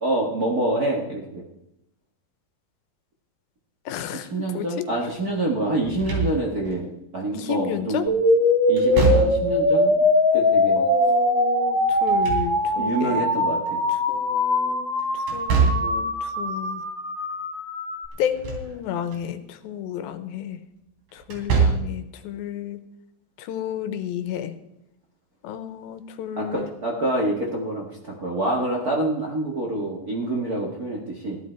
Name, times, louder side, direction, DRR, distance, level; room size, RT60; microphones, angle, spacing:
voice 1, 0.0-1.4 4.1-8.1 8.7-10.8 12.8-13.8 26.4-31.4, right 1 dB, 40° right, -2 dB, 1.4 m, -27 dB
voice 2, 3.9-4.9 7.3-8.1 10.8-13.3 14.1-14.9 15.3-16.8 18.2-20.6 21.1-22.8 23.4-24.5 25.4-26.8, left 10 dB, 90° left, 10 dB, 2.8 m, -31 dB
Slam / Thump thud, 5.8-6.8 8.8-9.7 11.9-13.0 15.3-16.1 18.1-18.7 19.1-19.2 21.2-22.0, right 5 dB, 75° right, 4.7 m, -24 dB
sound 1, 8.1-18.1, left 1 dB, 10° left, 1.1 m, -22 dB
15.5 x 12.0 x 4.5 m, 0.84 s
omnidirectional pair, 4.1 m